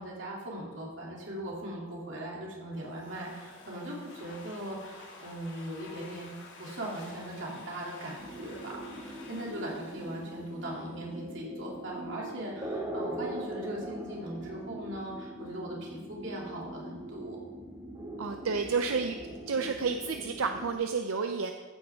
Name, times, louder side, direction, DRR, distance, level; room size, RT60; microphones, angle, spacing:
voice 1, 0.0-17.4, right 1 dB, 60° right, -3 dB, 3.0 m, -39 dB
Domestic sounds home sounds, 2.7-11.2, left 3 dB, 60° left, 2.6 m, -51 dB
sound 1, 8.2-20.7, right 1 dB, 20° right, 1.8 m, -41 dB
voice 2, 18.2-19.2 19.5-21.5, right 5 dB, 85° right, 6 dB, 0.6 m, -30 dB
14.5 x 8.9 x 3.6 m, 1.3 s
head